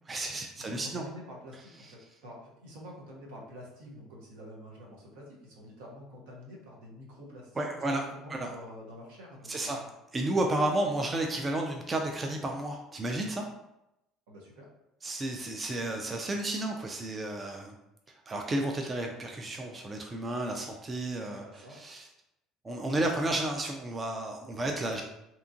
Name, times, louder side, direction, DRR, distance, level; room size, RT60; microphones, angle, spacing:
voice 1, 0.1-1.0 7.6-8.0 8.3-8.5 9.5-9.8 10.1-13.4 15.0-17.7 18.3-22.1 22.6-25.0, right 1 dB, 30° right, 2 dB, 0.4 m, -32 dB
voice 2, 0.6-9.9 14.3-14.7 21.3-21.8, equal, 80° right, -2 dB, 0.8 m, -47 dB
2.9 x 2.4 x 2.4 m, 0.87 s
hypercardioid pair, 70°, 0 cm